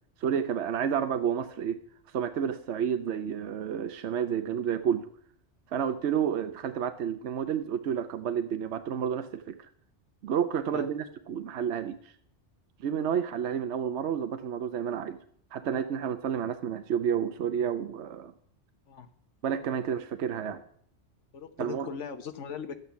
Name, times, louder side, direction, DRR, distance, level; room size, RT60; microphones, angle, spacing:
voice 1, 0.2-1.8 2.1-5.1 5.7-9.6 10.2-12.0 12.8-15.2 15.5-18.3 19.4-20.6 21.6-21.9, right 8 dB, 70° right, 9 dB, 1.0 m, -30 dB
voice 2, 21.3-22.8, left 7 dB, 80° left, 9 dB, 1.4 m, -39 dB
12.0 x 8.5 x 6.9 m, 0.63 s
omnidirectional pair, 1.2 m